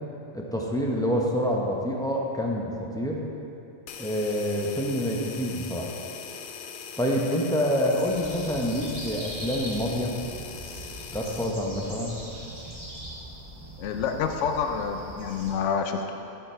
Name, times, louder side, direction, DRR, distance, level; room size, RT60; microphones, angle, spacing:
voice 1, 0.3-3.2 4.0-5.9 7.0-10.1 11.1-12.2, equal, 5° left, -2 dB, 0.8 m, -27 dB
sound 1, 3.9-11.6, left 6 dB, 60° left, 0.6 m, -41 dB
sound 2, 7.9-15.5, right 1 dB, 90° right, 2.7 m, -41 dB
voice 2, 13.8-16.1, left 6 dB, 80° left, 5 dB, 0.9 m, -28 dB
12.0 x 5.6 x 4.5 m, 2.9 s
omnidirectional pair, 1.2 m